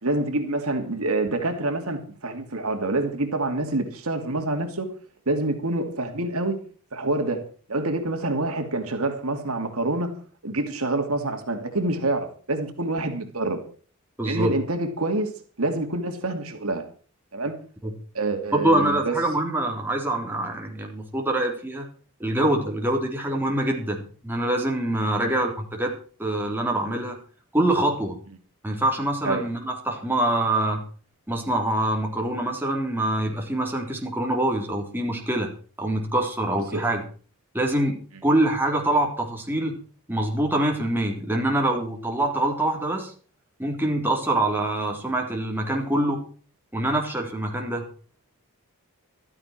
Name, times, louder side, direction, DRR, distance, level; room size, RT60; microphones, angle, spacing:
voice 1, 0.0-4.9 5.3-6.6 6.9-10.2 10.4-13.6 14.2-16.9 17.3-17.5 18.1-19.2 25.2-25.3 29.2-29.4 36.7-36.8, right 2 dB, 70° right, 2.7 m, -27 dB
voice 2, 14.2-14.5 17.8-17.9 18.5-21.9 22.2-25.9 26.2-27.2 27.5-28.2 28.6-30.8 31.3-35.5 35.8-37.0 37.5-38.0 38.2-39.8 40.1-43.1 43.6-46.2 46.7-47.9, right 1 dB, 10° right, 3.7 m, -25 dB
15.5 x 13.5 x 4.5 m
head